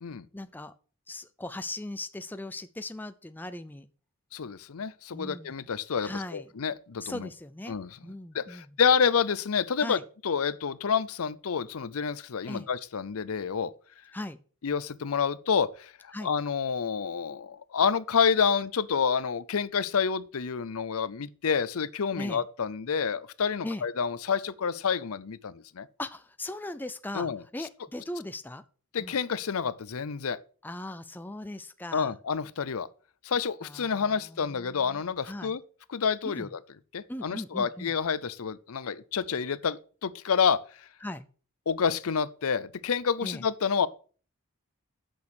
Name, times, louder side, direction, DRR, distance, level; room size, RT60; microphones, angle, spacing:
voice 1, 0.3-0.7 1.1-3.9 5.1-5.7 6.0-6.5 7.0-7.8 8.0-8.6 9.8-10.0 12.5-12.7 14.1-14.4 16.1-16.3 22.2-22.4 23.6-23.8 26.0-28.6 29.0-29.1 30.6-32.1 33.6-35.0 35.3-35.6 36.2-36.5 37.1-37.9 41.0-41.2 43.2-43.4, left 1 dB, 10° left, 0.4 m, -38 dB
voice 2, 4.3-7.3 7.7-8.0 8.3-13.7 14.6-25.9 27.1-27.7 28.9-30.4 31.9-32.9 33.2-35.6 35.9-36.6 36.9-40.9 41.7-43.9, left 6 dB, 75° left, 0.6 m, -28 dB
8.5 x 6.3 x 6.3 m
head